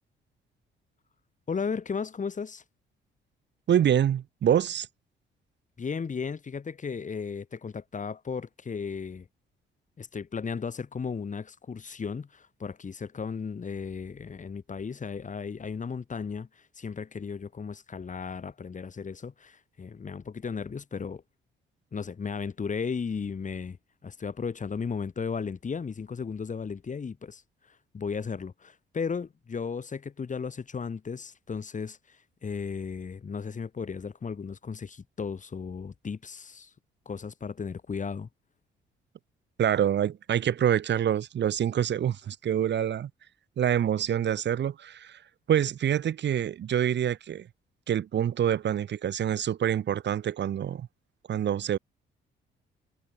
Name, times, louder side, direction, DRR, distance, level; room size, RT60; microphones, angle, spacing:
voice 1, 1.5-2.6 5.8-9.3 10.0-21.2 21.9-23.8 24.0-36.7 37.1-38.3, left 5 dB, 40° left, 7.7 m, -35 dB
voice 2, 3.7-4.9 39.6-43.1 43.6-45.2 45.5-47.5 47.9-50.9 51.3-51.8, right 9 dB, 60° right, 3.7 m, -26 dB
cardioid pair, 90°, 20 cm